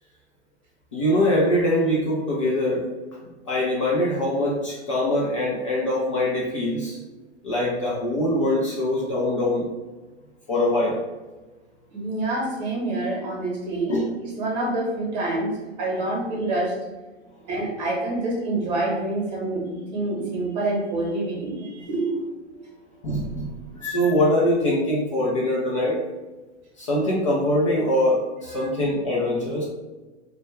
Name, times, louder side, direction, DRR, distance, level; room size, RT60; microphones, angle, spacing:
voice 1, 0.9-2.8 3.5-7.0 7.4-9.7 10.5-11.0 13.9-14.1 23.0-26.0 26.8-29.6, left 1 dB, 30° left, -4 dB, 0.4 m, -23 dB
voice 2, 11.9-13.9 14.2-16.8 17.5-22.1 28.5-28.7, right 2 dB, 35° right, -2 dB, 0.9 m, -27 dB
2.2 x 2.1 x 3.1 m, 1.2 s
figure-of-eight pair, 115°, 35 cm